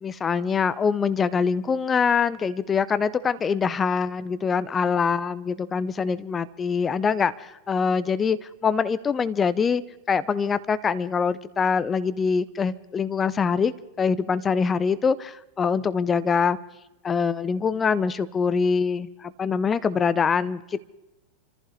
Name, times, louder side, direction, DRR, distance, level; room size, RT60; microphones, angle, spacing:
voice 1, 0.0-9.8 10.1-16.6 17.0-20.8, left 6 dB, 20° left, 0.6 m, -24 dB
27.0 x 15.0 x 3.3 m
figure-of-eight pair, 90°, 0 cm